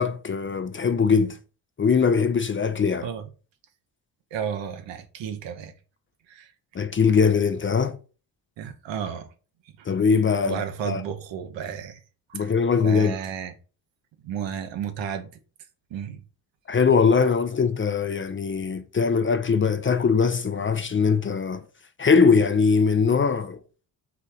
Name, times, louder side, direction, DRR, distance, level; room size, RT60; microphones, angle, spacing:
voice 1, 0.0-1.4 1.8-3.1 6.7-8.0 9.9-10.6 10.9-11.0 12.3-13.1 16.7-21.6 22.0-23.6, left 5 dB, 25° left, 0.5 m, -21 dB
voice 2, 4.3-5.7 6.3-6.5 8.6-9.3 9.6-9.9 10.5-12.0 12.3-12.6 12.8-13.5 14.2-15.3 15.9-16.2, right 8 dB, 70° right, 1.0 m, -33 dB
4.1 x 2.7 x 4.8 m
hypercardioid pair, 50°, 46 cm